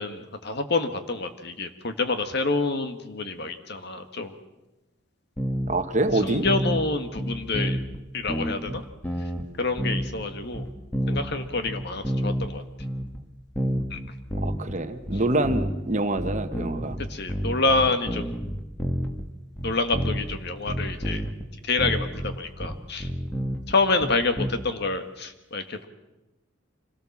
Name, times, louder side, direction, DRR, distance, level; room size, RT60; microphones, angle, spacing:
voice 1, 0.0-4.3 6.2-7.8 8.1-8.8 9.6-10.7 11.1-12.6 13.9-14.0 17.1-18.3 19.6-21.2 21.7-23.1 23.7-25.9, left 3 dB, 55° left, 8 dB, 1.7 m, -27 dB
sound 1, 5.4-5.8 6.1-6.8 7.2-8.0 8.3-9.4 9.8-10.3 10.5-12.5 12.8-13.2 13.6-14.8 15.1-15.8 16.2-19.2 19.6-20.4 20.7-21.5 21.8-24.5, equal, 10° left, 1.9 m, -29 dB
voice 2, 5.7-6.5 14.4-17.0, right 2 dB, 40° right, 8 dB, 1.3 m, -26 dB
26.0 x 17.5 x 7.4 m, 1.0 s
head